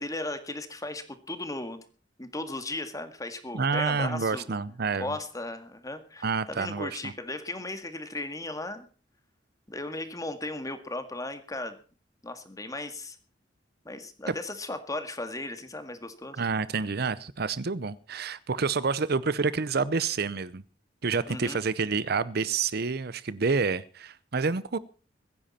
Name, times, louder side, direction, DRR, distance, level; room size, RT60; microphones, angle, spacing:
voice 1, 0.0-1.8 2.2-4.6 5.0-8.9 9.7-11.8 12.2-13.2 13.9-16.4 21.3-21.6, left 2 dB, 20° left, 9 dB, 1.9 m, -36 dB
voice 2, 3.5-5.2 6.2-7.1 14.3-14.4 16.4-20.6 21.0-24.8, right 4 dB, 60° right, 17 dB, 0.7 m, -28 dB
23.0 x 10.5 x 4.3 m, 0.37 s
head